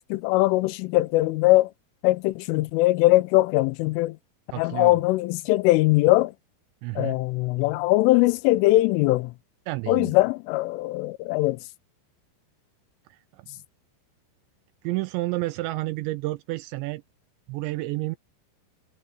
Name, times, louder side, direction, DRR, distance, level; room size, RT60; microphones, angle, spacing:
voice 1, 0.1-1.7 2.0-4.2 4.6-6.3 7.0-9.3 9.9-11.6, left 19 dB, 85° left, 3.2 m, -21 dB
voice 2, 4.5-5.0 6.8-7.2 9.7-10.1 13.1-13.5 14.8-17.0 17.5-18.2, right 20 dB, 85° right, 2.6 m, -30 dB
omnidirectional pair, 5.6 m